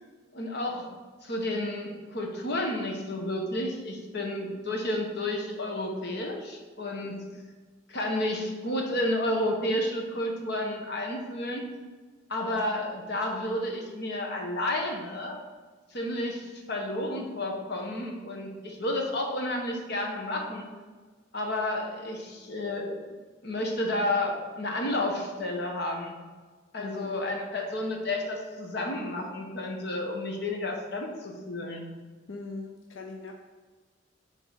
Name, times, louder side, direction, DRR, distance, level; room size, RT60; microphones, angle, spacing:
voice 1, 0.3-0.9 1.2-7.2 7.9-11.7 12.3-15.4 15.9-20.7 21.3-23.0 23.4-26.1 26.7-31.9, left 1 dB, 60° left, 1 dB, 1.3 m, -31 dB
voice 2, 26.8-27.1 32.3-33.3, left 3 dB, 90° left, 2 dB, 0.7 m, -40 dB
7.2 x 3.9 x 6.6 m, 1.4 s
head